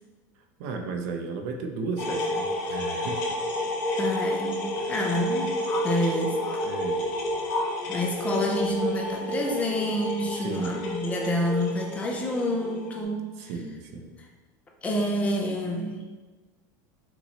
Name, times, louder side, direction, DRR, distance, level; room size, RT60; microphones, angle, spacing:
voice 1, 0.6-3.3 4.8-4.9 6.6-7.1 10.2-10.9 13.4-14.1, right 4 dB, 55° right, 4 dB, 0.6 m, -34 dB
sound 1, 2.0-13.0, left 1 dB, 75° left, 1.3 m, -30 dB
voice 2, 4.0-5.5 5.8-6.4 7.9-13.3 14.8-16.0, left 1 dB, 15° left, 1 dB, 0.5 m, -28 dB
5.9 x 3.0 x 2.8 m, 1.3 s
supercardioid pair, 170°, 10 cm